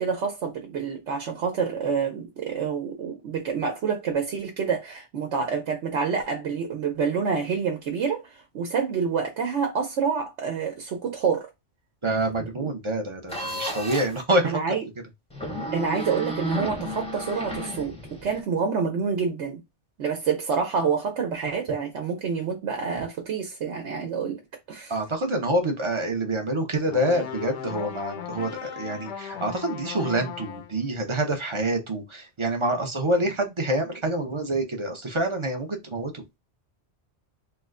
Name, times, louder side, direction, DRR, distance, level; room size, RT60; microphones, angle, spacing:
voice 1, 0.0-11.5 12.6-12.7 14.4-14.9 15.7-19.6 20.0-24.4 24.7-24.9, right 6 dB, 75° right, 1.0 m, -27 dB
voice 2, 12.0-14.6 24.9-36.2, right 1 dB, 35° right, 0.6 m, -26 dB
sound 1, 13.3-14.2 15.3-18.4, equal, 5° left, 0.7 m, -33 dB
sound 2, 26.8-30.8, left 9 dB, 75° left, 0.9 m, -37 dB
3.1 x 2.1 x 3.6 m
omnidirectional pair, 1.2 m